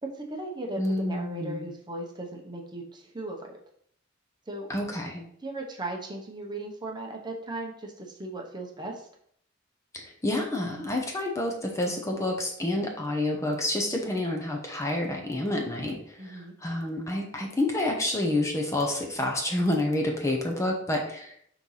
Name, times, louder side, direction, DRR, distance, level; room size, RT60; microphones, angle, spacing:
voice 1, 0.0-3.6 4.5-4.7 5.4-9.1 16.2-16.5, right 2 dB, 20° right, 1 dB, 0.9 m, -37 dB
voice 2, 0.8-1.7 4.7-5.2 9.9-21.5, left 1 dB, 15° left, 1 dB, 0.8 m, -29 dB
4.5 x 3.9 x 5.6 m, 0.66 s
head